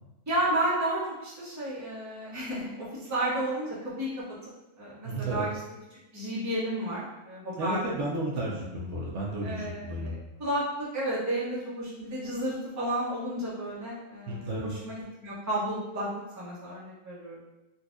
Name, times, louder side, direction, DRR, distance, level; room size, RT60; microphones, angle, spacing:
voice 1, 0.3-4.2 4.8-5.5 6.1-8.0 9.4-10.1 10.4-16.1 16.4-17.4, right 1 dB, 15° right, -8 dB, 0.7 m, -32 dB
voice 2, 5.0-5.4 7.6-10.2 14.3-14.7, right 1 dB, 70° right, -4 dB, 0.9 m, -32 dB
3.9 x 2.4 x 2.5 m, 0.97 s
omnidirectional pair, 1.4 m